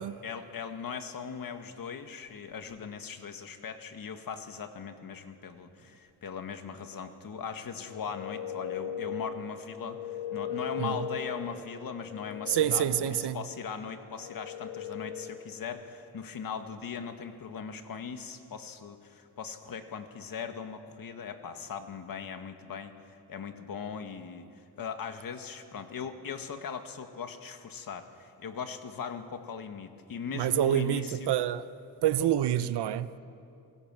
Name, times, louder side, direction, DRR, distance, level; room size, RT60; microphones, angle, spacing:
voice 1, 0.0-31.4, left 6 dB, 60° left, 7 dB, 1.8 m, -39 dB
sound 1, 7.8-15.6, left 7 dB, 85° left, 2.0 m, -39 dB
voice 2, 12.5-13.4 30.3-31.6 32.0-33.1, right 11 dB, 85° right, 14 dB, 0.9 m, -27 dB
27.0 x 18.0 x 7.6 m, 2.5 s
cardioid pair, 100°, 39 cm